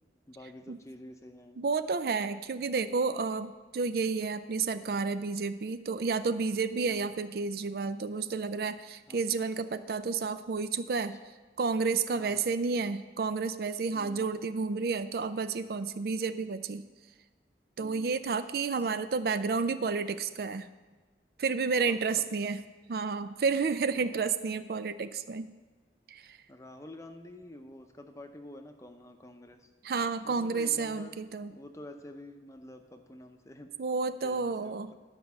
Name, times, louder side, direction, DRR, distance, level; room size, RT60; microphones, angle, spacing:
voice 1, 0.3-1.6 6.7-7.1 9.1-9.3 12.1-12.5 13.9-14.4 17.8-18.2 21.8-22.3 23.9-24.2 26.5-29.7 30.2-31.2 31.5-33.7 34.2-34.9, left 1 dB, 15° left, 6 dB, 0.7 m, -48 dB
voice 2, 1.6-11.2 11.6-16.9 17.8-20.7 21.4-22.6 22.9-25.5 26.1-26.4 29.8-31.5 33.8-34.9, right 4 dB, 55° right, 12 dB, 0.4 m, -31 dB
11.5 x 5.3 x 7.0 m, 1.3 s
head